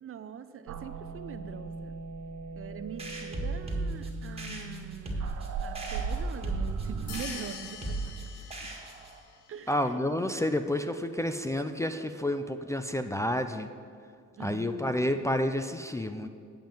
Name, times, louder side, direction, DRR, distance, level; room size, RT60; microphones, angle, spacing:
voice 1, 0.0-2.0 2.6-5.4 5.6-8.2 9.5-10.0 14.4-14.9, right 7 dB, 45° right, 12 dB, 0.6 m, -43 dB
sound 1, 0.7-7.2, right 4 dB, 65° right, 0.9 m, -38 dB
sound 2, 3.0-9.2, right 2 dB, 20° right, 1.8 m, -37 dB
sound 3, 7.1-9.4, left 7 dB, 80° left, 1.1 m, -44 dB
voice 2, 9.7-13.7 14.4-16.3, left 1 dB, 10° left, 7 dB, 0.4 m, -30 dB
8.7 x 5.5 x 7.6 m, 2.3 s
cardioid pair, 90°, 30 cm